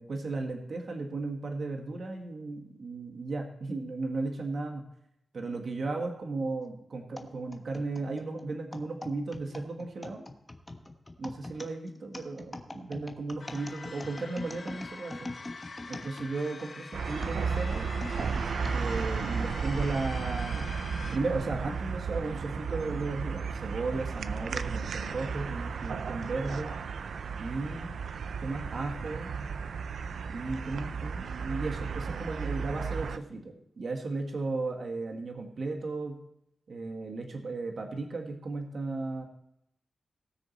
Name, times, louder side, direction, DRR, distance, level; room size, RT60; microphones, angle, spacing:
voice 1, 0.0-4.8 5.3-10.2 11.2-15.3 15.9-17.9 18.7-20.7 21.1-26.8 27.4-27.9 28.4-29.3 30.3-36.2 36.7-39.2, right 3 dB, 60° right, 3 dB, 1.6 m, -35 dB
sound 1, 7.2-16.7 17.2-18.8 19.4-19.5 20.4-20.6, left 2 dB, 20° left, 1.1 m, -43 dB
sound 2, 13.4-21.2, left 4 dB, 55° left, 1.1 m, -45 dB
sound 3, 16.9-33.2, right 5 dB, 80° right, 0.5 m, -34 dB
18.5 x 6.5 x 4.3 m, 0.77 s
wide cardioid pair, 110°, 0 cm